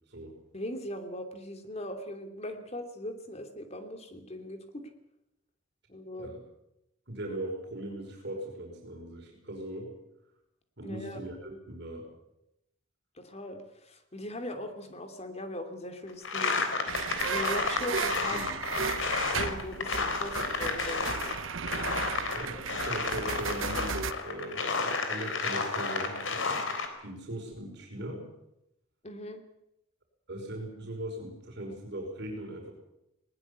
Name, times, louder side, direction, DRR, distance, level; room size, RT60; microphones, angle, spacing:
voice 1, 0.5-4.9 5.9-6.3 10.8-11.2 13.2-16.7 17.2-18.4 19.3-21.4 29.0-29.4, left 1 dB, 35° left, 7 dB, 3.0 m, -39 dB
voice 2, 7.1-9.9 10.8-12.1 18.3-18.6 22.3-26.7 27.0-28.3 30.3-32.7, right 1 dB, 60° right, 0 dB, 5.5 m, -39 dB
sound 1, 16.2-21.4 21.7-26.9, left 4 dB, 75° left, 3.7 m, -31 dB
sound 2, 16.9-24.1, right 6 dB, 85° right, 1.0 m, -35 dB
20.5 x 19.5 x 8.4 m, 0.84 s
head